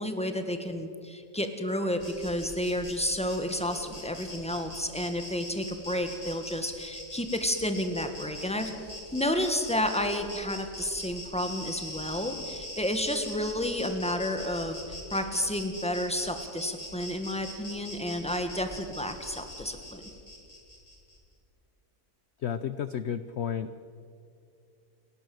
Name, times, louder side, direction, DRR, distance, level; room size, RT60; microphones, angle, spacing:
voice 1, 0.0-8.7 9.1-20.0, left 1 dB, 5° left, 7 dB, 1.5 m, -31 dB
Insect, 2.0-21.2, left 1 dB, 20° left, 3.6 m, -43 dB
voice 2, 22.4-23.7, left 8 dB, 60° left, 12 dB, 0.7 m, -32 dB
28.5 x 11.5 x 7.8 m, 2.4 s
omnidirectional pair, 1.7 m